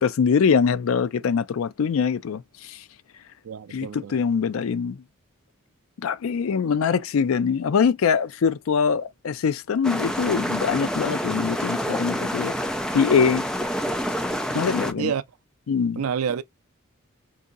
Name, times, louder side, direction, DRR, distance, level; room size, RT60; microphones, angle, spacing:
voice 1, 0.0-2.8 3.7-5.0 6.0-12.5 12.9-13.4 14.5-15.1 15.7-16.0, left 6 dB, 75° left, 0.4 m, -23 dB
voice 2, 3.4-4.2 15.0-15.2 16.0-16.4, right 7 dB, 80° right, 0.4 m, -28 dB
sound 1, 9.8-14.9, equal, 5° left, 0.3 m, -27 dB
2.7 x 2.7 x 3.8 m
head